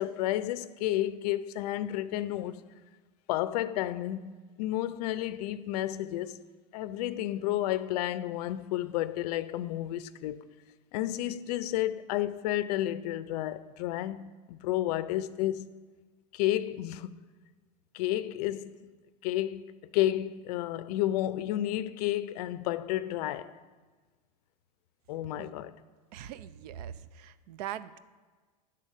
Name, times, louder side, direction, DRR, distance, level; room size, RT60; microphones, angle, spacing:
voice 1, 0.0-2.6 3.3-6.4 6.7-10.4 10.9-15.8 16.3-17.2 17.9-18.7 19.2-23.5 25.1-25.8, left 13 dB, 70° left, 0.5 m, -31 dB
voice 2, 26.1-28.0, right 11 dB, 70° right, 0.5 m, -41 dB
9.9 x 3.9 x 6.4 m
supercardioid pair, 130°, 21 cm